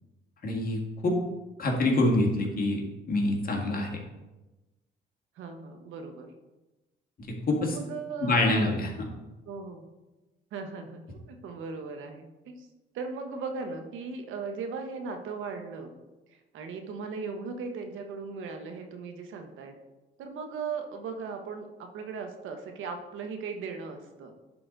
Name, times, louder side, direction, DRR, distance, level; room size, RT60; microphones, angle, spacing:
voice 1, 0.4-1.2 1.6-2.8 3.1-4.0 7.5-7.8 8.2-9.1, left 2 dB, 45° left, 1 dB, 1.8 m, -26 dB
voice 2, 5.4-6.3 7.7-8.8 9.5-9.9 10.5-12.7 12.9-15.9 16.5-19.7 20.2-24.3, right 4 dB, 85° right, 5 dB, 1.1 m, -38 dB
10.5 x 3.9 x 3.9 m, 1.1 s
cardioid pair, 90°, 20 cm